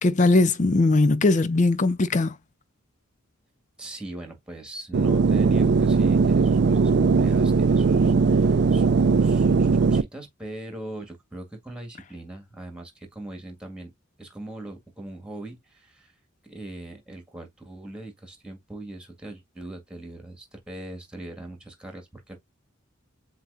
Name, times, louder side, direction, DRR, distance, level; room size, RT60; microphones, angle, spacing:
voice 1, 0.0-2.3, left 2 dB, 40° left, 0.5 m, -20 dB
voice 2, 3.8-13.9 14.2-16.1 16.4-22.4, right 1 dB, 5° right, 1.8 m, -40 dB
sound 1, 4.9-10.0, right 4 dB, 55° right, 0.4 m, -19 dB
7.5 x 2.8 x 2.5 m
head